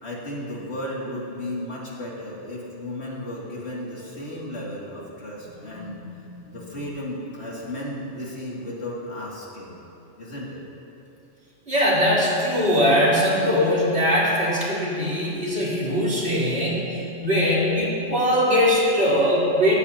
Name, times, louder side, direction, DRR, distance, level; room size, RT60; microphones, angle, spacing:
voice 1, 0.0-6.0 6.5-9.8 10.2-10.6, left 1 dB, 65° left, -5 dB, 2.9 m, -34 dB
voice 2, 5.7-6.1 6.5-6.6 11.7-19.8, equal, 60° right, -8 dB, 4.0 m, -21 dB
18.0 x 16.0 x 2.9 m, 2.7 s
omnidirectional pair, 1.2 m